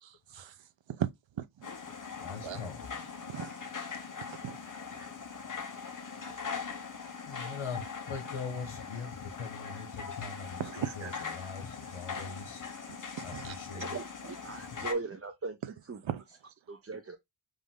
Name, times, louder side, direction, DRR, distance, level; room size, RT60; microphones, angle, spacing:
voice 1, 0.0-0.5 0.9-1.1 1.4-1.7 2.4-2.6 3.3-3.5 4.2-4.6 4.9-5.1 10.6-11.4 12.9-13.6 16.0-16.2, right 9 dB, 65° right, 0.7 m, -38 dB
sound 1, 1.6-14.9, left 5 dB, 40° left, 1.0 m, -41 dB
voice 2, 2.2-2.8 7.3-12.6 13.2-14.0 14.7-14.8, left 5 dB, 80° left, 1.4 m, -41 dB
voice 3, 13.7-15.6 15.9-16.0 16.7-17.2, right 3 dB, 30° right, 0.6 m, -38 dB
5.2 x 2.6 x 3.7 m
wide cardioid pair, 115°, 49 cm